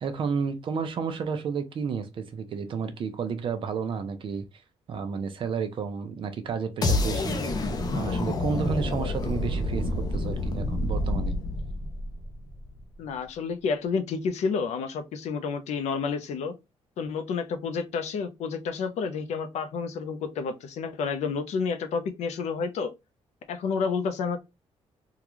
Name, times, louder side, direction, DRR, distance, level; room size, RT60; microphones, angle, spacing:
voice 1, 0.0-4.5 4.9-7.4 7.9-11.3, right 6 dB, 50° right, 0.6 m, -31 dB
sound 1, 6.8-12.8, left 2 dB, 35° left, 0.6 m, -28 dB
voice 2, 13.0-16.5 17.0-22.9 23.5-24.4, left 5 dB, 80° left, 0.6 m, -30 dB
3.7 x 2.3 x 2.9 m
wide cardioid pair, 170°, 12 cm